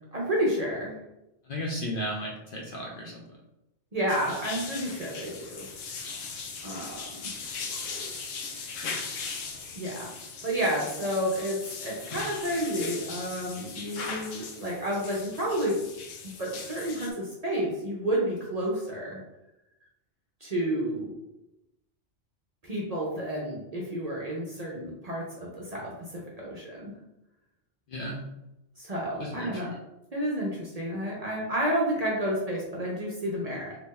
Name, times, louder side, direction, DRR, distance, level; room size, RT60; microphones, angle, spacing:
voice 1, 0.1-1.0 3.9-5.7 6.6-7.4 9.7-10.1 10.4-15.8 16.2-19.2 20.4-21.1 22.6-26.9 28.8-29.7 30.1-33.8, equal, 40° right, -3 dB, 0.6 m, -30 dB
voice 2, 1.5-3.2 27.9-28.2 29.3-29.7, equal, 55° left, -1 dB, 0.7 m, -34 dB
sound 1, 4.1-17.1, left 4 dB, 85° left, 1.0 m, -39 dB
2.8 x 2.6 x 3.7 m, 0.91 s
omnidirectional pair, 1.3 m